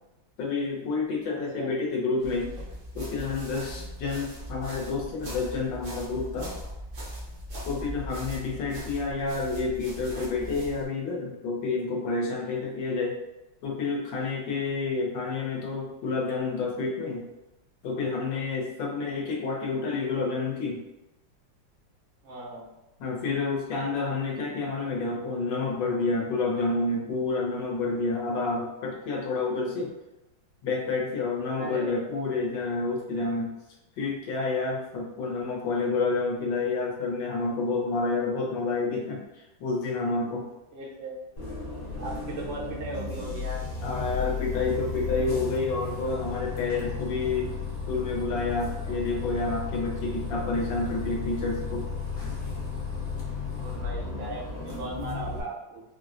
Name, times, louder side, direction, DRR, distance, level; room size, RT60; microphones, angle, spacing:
voice 1, 0.4-2.5 2.9-6.5 7.6-13.2 13.6-17.3 17.8-20.8 23.0-29.9 30.6-33.5 34.0-40.5 43.8-47.5 47.9-51.8, left 3 dB, 75° left, -2 dB, 1.4 m, -29 dB
voice 2, 1.3-1.7 22.2-22.7 31.6-32.1 40.7-41.1 42.0-43.6 53.5-55.8, right 2 dB, 80° right, -3 dB, 1.5 m, -38 dB
sound 1, 2.2-10.9, equal, 55° right, 0.8 m, -39 dB
Bus, 41.4-55.4, left 4 dB, 55° left, 1.3 m, -34 dB
4.3 x 2.0 x 2.5 m, 0.95 s
omnidirectional pair, 2.1 m